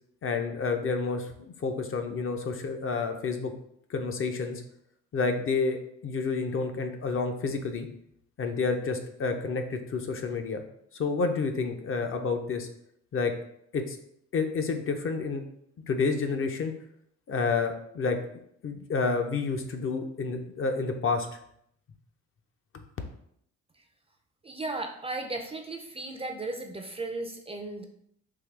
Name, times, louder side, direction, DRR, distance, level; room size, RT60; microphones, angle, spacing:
voice 1, 0.2-3.5 3.9-4.6 5.1-7.9 8.4-10.6 10.9-12.7 13.1-13.3 13.7-14.0 14.3-15.4 15.9-16.7 17.3-18.2 18.6-21.3, left 4 dB, 45° left, 5 dB, 0.5 m, -29 dB
voice 2, 24.4-27.9, right 2 dB, 20° right, 4 dB, 0.4 m, -35 dB
3.7 x 2.7 x 3.2 m, 0.70 s
cardioid pair, 90°, 30 cm